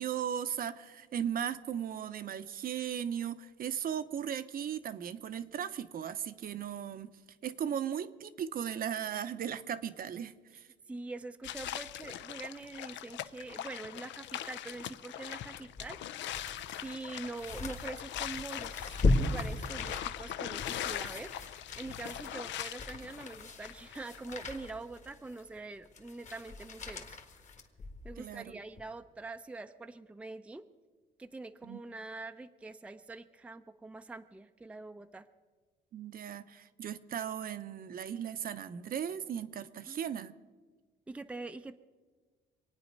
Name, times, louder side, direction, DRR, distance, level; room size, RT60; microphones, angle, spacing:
voice 1, 0.0-7.1 7.4-10.6 28.2-28.6 31.6-31.8 35.9-40.3, right 9 dB, 50° right, 11 dB, 0.7 m, -37 dB
voice 2, 10.9-16.4 16.8-21.4 21.7-27.2 28.0-30.6 31.2-35.3 39.9-40.1 41.1-41.8, right 3 dB, 5° right, 8 dB, 0.5 m, -44 dB
sound 1, 11.4-24.3, left 11 dB, 75° left, 0.6 m, -41 dB
sound 2, 15.6-28.2 28.7-28.8, left 2 dB, 40° left, 1.6 m, -37 dB
25.0 x 9.3 x 5.3 m, 1.4 s
cardioid pair, 130°, 19 cm